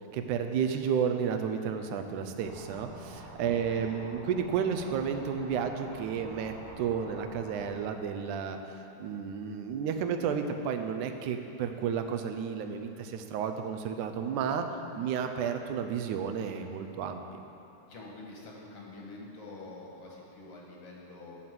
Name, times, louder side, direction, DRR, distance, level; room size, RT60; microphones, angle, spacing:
voice 1, 0.1-8.6 9.0-14.7 14.9-17.2, right 7 dB, 85° right, 6 dB, 2.2 m, -32 dB
sound 1, 2.4-7.7, right 2 dB, 55° right, 2.4 m, -47 dB
voice 2, 3.7-4.0 17.9-21.5, left 2 dB, 60° left, -2 dB, 2.2 m, -47 dB
12.0 x 5.9 x 7.7 m, 2.9 s
omnidirectional pair, 3.4 m